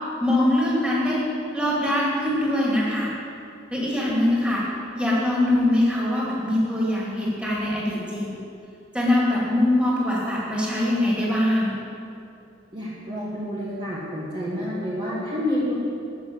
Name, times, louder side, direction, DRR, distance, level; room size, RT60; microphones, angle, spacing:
voice 1, 0.2-1.2 1.5-3.1 3.7-4.6 4.9-8.4 8.9-11.8, left 1 dB, 5° right, -6 dB, 2.8 m, -22 dB
voice 2, 12.7-15.7, left 1 dB, 25° right, -7 dB, 1.6 m, -29 dB
13.0 x 6.5 x 8.0 m, 2.6 s
head